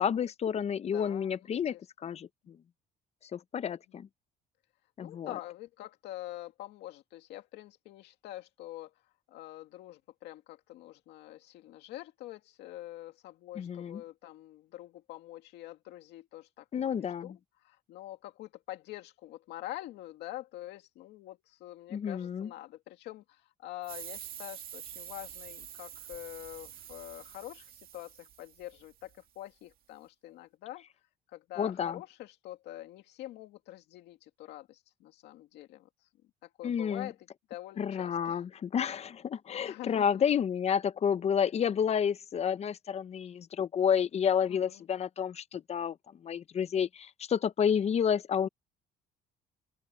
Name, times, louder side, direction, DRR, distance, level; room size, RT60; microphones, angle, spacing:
voice 1, 0.0-1.8 2.0-2.6 3.3-4.1 5.0-5.4 13.5-14.0 16.7-17.4 21.9-22.5 31.6-32.0 36.6-37.1 37.8-46.0 46.2-48.5, left 8 dB, 40° left, 0.7 m, -30 dB
voice 2, 0.9-1.3 1.7-1.8 3.6-3.7 5.0-8.9 9.3-17.3 17.6-29.1 29.4-30.8 31.3-35.9 36.6-37.1 37.5-38.4 39.5-40.2 44.5-44.6, left 15 dB, 85° left, 2.2 m, -45 dB
sound 1, 23.8-29.1, right 10 dB, 60° right, 2.1 m, -47 dB
open air
cardioid pair, 110°, 17 cm